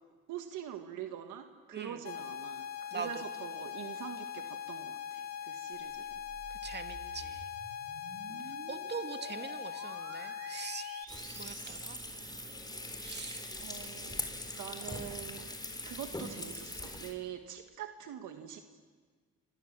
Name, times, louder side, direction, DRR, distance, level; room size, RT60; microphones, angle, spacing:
voice 1, 0.3-6.1 8.3-8.5 13.0-15.5 15.8-18.6, right 10 dB, 85° right, 6 dB, 1.6 m, -44 dB
sound 1, 2.0-11.0, left 9 dB, 55° left, 1.7 m, -41 dB
voice 2, 2.9-3.3 6.6-7.5 8.7-10.9 11.4-12.0 13.0-13.4, right 5 dB, 35° right, 6 dB, 2.2 m, -42 dB
sound 2, 5.7-12.6, right 6 dB, 55° right, 3.3 m, -51 dB
Frying (food), 11.1-17.1, left 1 dB, 15° left, 3.9 m, -42 dB
28.0 x 25.5 x 7.5 m, 1.6 s
cardioid pair, 90°, 30 cm